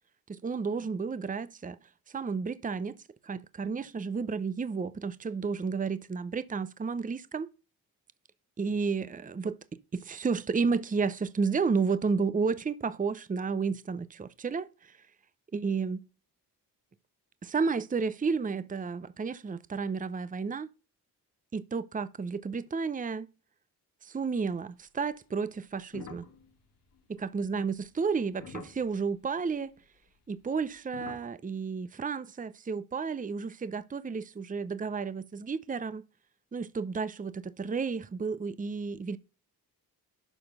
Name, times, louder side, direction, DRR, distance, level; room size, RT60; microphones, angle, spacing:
voice 1, 0.3-1.8 2.1-3.0 3.2-7.5 8.6-14.9 15.5-16.0 17.4-20.7 21.5-23.3 24.0-26.3 27.2-29.7 30.3-36.0 36.5-39.2, right 5 dB, 20° right, 0.7 m, -32 dB
sound 1, 25.9-29.1 30.2-31.3, left 6 dB, 90° left, 2.1 m, -47 dB
11.5 x 4.3 x 5.4 m
cardioid pair, 75°, 38 cm